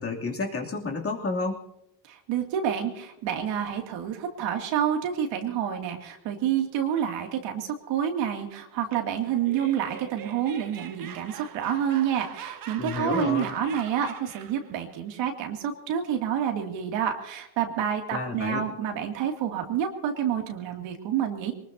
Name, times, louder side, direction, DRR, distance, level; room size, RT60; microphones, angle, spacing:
voice 1, 0.0-1.6 12.8-13.4 18.1-18.6, left 3 dB, 30° left, 0 dB, 2.8 m, -30 dB
voice 2, 2.1-21.5, right 9 dB, 65° right, 3 dB, 2.6 m, -28 dB
Laughter, 9.3-14.7, right 9 dB, 45° right, 1.4 m, -42 dB
23.0 x 20.0 x 2.8 m, 0.81 s
supercardioid pair, 110°, 48 cm